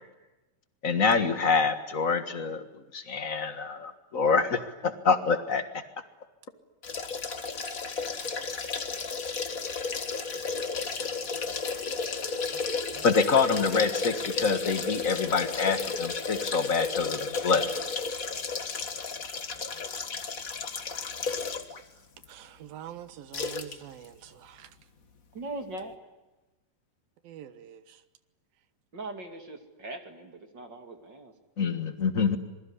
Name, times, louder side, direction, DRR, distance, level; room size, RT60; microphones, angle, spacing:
voice 1, 0.8-2.7 2.9-5.6 13.0-17.7 31.6-32.4, left 5 dB, 60° left, 9 dB, 0.8 m, -26 dB
sound 1, 6.8-21.8 22.2-22.3 23.3-23.7 24.0-24.1, left 4 dB, 40° left, 1.2 m, -33 dB
voice 2, 22.3-24.1 27.3-27.8, right 11 dB, 75° right, 13 dB, 3.2 m, -44 dB
voice 3, 25.3-26.0 28.9-31.3, right 2 dB, 35° right, 6 dB, 2.7 m, -40 dB
26.5 x 22.5 x 9.9 m, 1.1 s
omnidirectional pair, 4.2 m